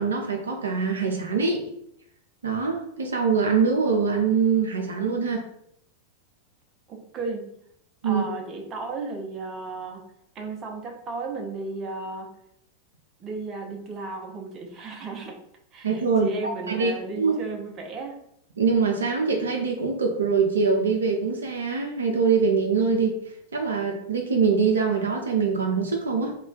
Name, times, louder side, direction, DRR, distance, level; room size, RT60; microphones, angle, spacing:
voice 1, 0.0-1.6 2.4-5.5 8.0-8.3 15.8-17.3 18.6-23.2 23.5-26.4, right 5 dB, 70° right, 2 dB, 0.4 m, -23 dB
voice 2, 6.9-7.5 8.0-10.0 10.3-12.3 13.2-15.4 15.7-18.2, right 3 dB, 25° right, 2 dB, 0.6 m, -34 dB
2.3 x 2.2 x 3.8 m, 0.72 s
figure-of-eight pair, 90°, 0 cm